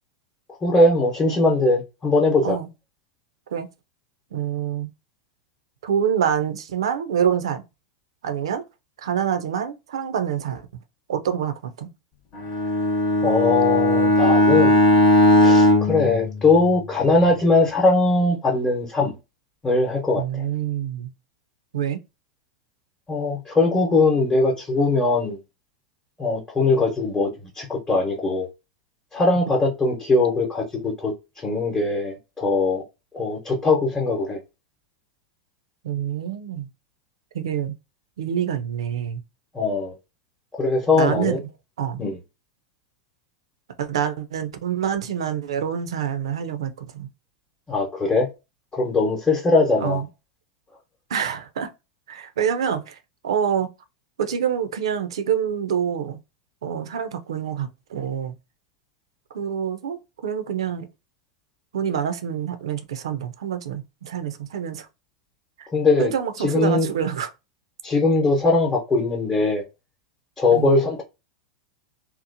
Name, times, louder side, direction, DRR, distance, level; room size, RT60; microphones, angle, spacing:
voice 1, 0.6-2.6 13.2-14.8 15.4-19.2 19.6-20.4 23.1-25.4 26.2-27.3 27.6-28.5 29.1-31.1 31.4-32.8 33.1-34.4 39.5-39.9 40.6-41.4 42.0-42.2 47.7-48.3 48.7-50.0 65.7-66.1 66.4-66.9 67.8-69.6 70.4-71.0, left 3 dB, 20° left, 0.9 m, -20 dB
voice 2, 4.3-4.9 5.8-7.7 8.2-8.6 9.0-10.7 11.1-11.9 20.2-21.1 21.7-22.0 35.8-36.7 37.3-37.7 38.2-39.2 40.9-41.4 41.8-42.0 43.8-47.1 49.8-50.1 51.1-51.7 52.1-53.0 53.2-53.7 54.2-56.2 56.6-58.3 59.3-60.9 61.7-64.9 65.6-65.7 66.0-67.3 70.5-70.8, right 8 dB, 75° right, 0.5 m, -26 dB
Bowed string instrument, 12.3-17.0, left 1 dB, 45° left, 0.9 m, -18 dB
2.8 x 2.0 x 2.6 m
hypercardioid pair, 95°, 3 cm